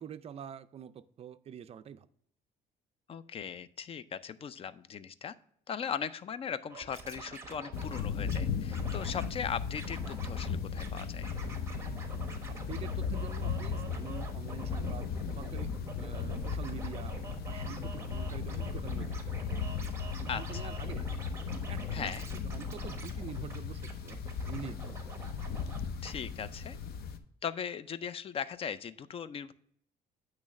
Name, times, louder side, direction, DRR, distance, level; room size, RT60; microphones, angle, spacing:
voice 1, 0.0-2.1 12.5-17.2 17.5-19.6 20.2-21.1 21.7-24.2 24.5-24.9, right 8 dB, 35° right, 0.4 m, -46 dB
voice 2, 3.1-5.3 5.7-11.3 20.3-20.7 21.9-22.3 26.0-26.8 27.4-29.5, left 7 dB, 35° left, 0.4 m, -39 dB
Scratching (performance technique), 6.7-8.4 8.7-9.3 9.7-10.5 10.8-25.8 26.0-26.1, right 3 dB, 15° right, 1.1 m, -47 dB
sound 1, 7.7-27.2, left 6 dB, 65° left, 0.7 m, -36 dB
8.5 x 3.2 x 6.3 m
cardioid pair, 110°, 17 cm